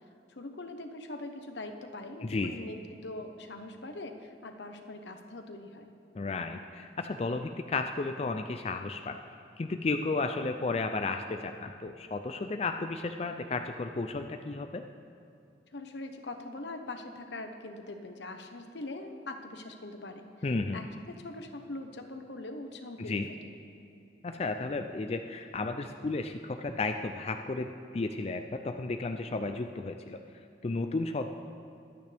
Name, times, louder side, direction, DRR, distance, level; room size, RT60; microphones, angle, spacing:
voice 1, 0.3-2.8 3.0-5.9 15.7-20.5 20.7-23.5, left 2 dB, 80° left, 5 dB, 1.1 m, -42 dB
voice 2, 2.2-2.7 6.1-9.2 9.6-14.8 20.4-20.8 23.1-23.3 24.2-30.2 30.6-31.3, left 3 dB, 35° left, 6 dB, 0.4 m, -33 dB
23.0 x 9.2 x 3.5 m, 2.6 s
head